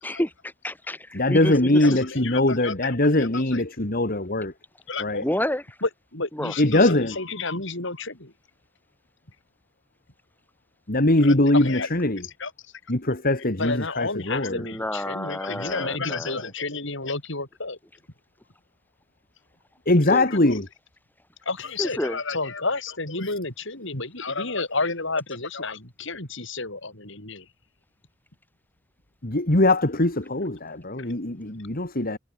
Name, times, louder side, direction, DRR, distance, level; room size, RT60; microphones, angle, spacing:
voice 1, 0.0-2.0 5.2-5.6 6.3-6.5 14.5-16.4 20.1-20.5 21.8-22.2, left 1 dB, 10° left, 7.2 m, -30 dB
voice 2, 1.1-4.5 5.0-5.2 6.6-7.2 10.9-12.2 12.9-14.6 19.9-20.7 29.2-32.2, left 1 dB, 45° left, 2.7 m, -21 dB
voice 3, 1.8-3.6 4.9-5.3 5.8-8.3 11.2-11.9 12.2-12.5 13.6-17.8 20.5-20.6 21.4-27.4, left 3 dB, 65° left, 6.6 m, -31 dB
head